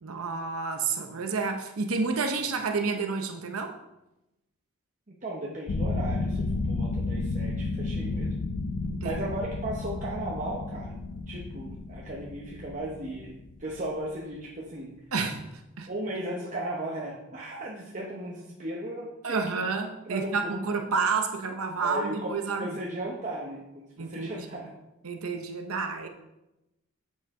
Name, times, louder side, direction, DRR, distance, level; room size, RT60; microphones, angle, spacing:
voice 1, 0.0-3.7 8.8-9.2 15.1-15.4 15.8-15.9 19.2-22.8 24.0-24.6 25.0-26.1, right 4 dB, 85° right, 4 dB, 0.7 m, -30 dB
voice 2, 5.1-8.3 9.0-11.0 11.3-15.0 15.9-19.6 20.1-20.6 21.8-24.7, right 1 dB, 35° right, -3 dB, 0.9 m, -36 dB
sound 1, 5.7-14.1, left 3 dB, 90° left, 0.6 m, -32 dB
8.3 x 6.4 x 3.6 m, 0.93 s
head